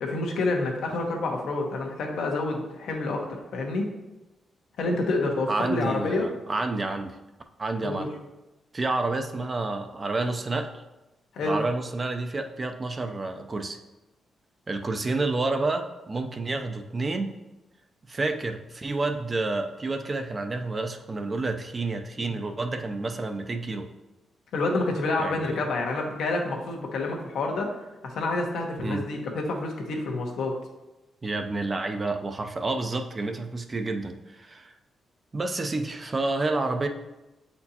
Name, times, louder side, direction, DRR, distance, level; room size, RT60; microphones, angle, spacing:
voice 1, 0.0-3.9 4.8-6.3 7.8-8.1 11.3-11.6 22.3-22.4 24.5-27.7 28.0-30.5, left 2 dB, 85° left, 0 dB, 1.1 m, -28 dB
voice 2, 5.5-7.2 7.6-8.1 8.7-10.7 11.4-13.8 14.7-17.3 18.1-23.9 25.2-25.6 28.8-29.0 31.2-34.7 35.3-36.9, right 3 dB, 30° right, 6 dB, 0.5 m, -29 dB
7.7 x 4.3 x 2.8 m, 1.0 s
cardioid pair, 110°, 0 cm